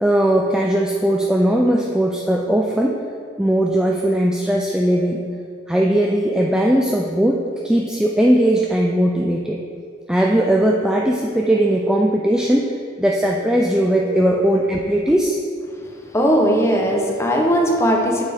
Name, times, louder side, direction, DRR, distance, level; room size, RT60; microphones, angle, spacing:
voice 1, 0.0-3.0 3.4-5.2 5.7-9.6 10.1-12.7 13.0-15.4, right 1 dB, 5° right, -1 dB, 0.3 m, -18 dB
voice 2, 16.1-18.2, equal, 15° left, 0 dB, 0.8 m, -18 dB
7.9 x 6.7 x 3.5 m, 2.3 s
head